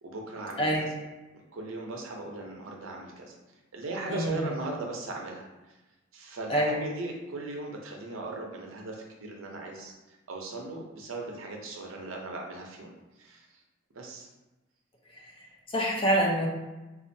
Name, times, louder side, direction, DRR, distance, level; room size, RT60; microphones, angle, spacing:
voice 1, 0.0-0.9 1.5-3.3 3.7-5.5 6.1-12.9 13.2-13.5 13.9-14.3, right 2 dB, 80° right, 1 dB, 0.6 m, -38 dB
voice 2, 0.6-0.9 4.1-4.4 6.5-6.8 15.1-16.5, equal, 25° left, -2 dB, 0.6 m, -27 dB
4.2 x 2.4 x 2.6 m, 1.1 s
head